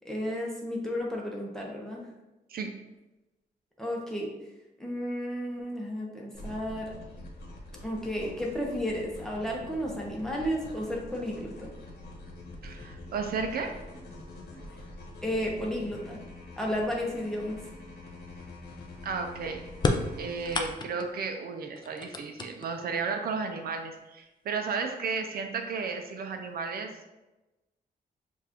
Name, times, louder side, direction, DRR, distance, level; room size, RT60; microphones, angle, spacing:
voice 1, 0.0-2.0 3.8-4.3 4.8-6.9 7.8-11.7 15.2-16.2 16.6-17.6, equal, 5° left, -2 dB, 0.7 m, -32 dB
sound 1, 6.3-20.7, left 2 dB, 80° left, 1.2 m, -45 dB
voice 2, 12.6-13.8 19.0-19.6 20.2-26.9, right 5 dB, 65° right, 5 dB, 0.5 m, -33 dB
sound 2, 19.8-21.2 21.8-22.9 24.0-24.1 25.0-25.1 25.6-26.1, left 3 dB, 25° left, 0.4 m, -31 dB
6.9 x 2.4 x 2.9 m, 1.0 s
wide cardioid pair, 170°, 17 cm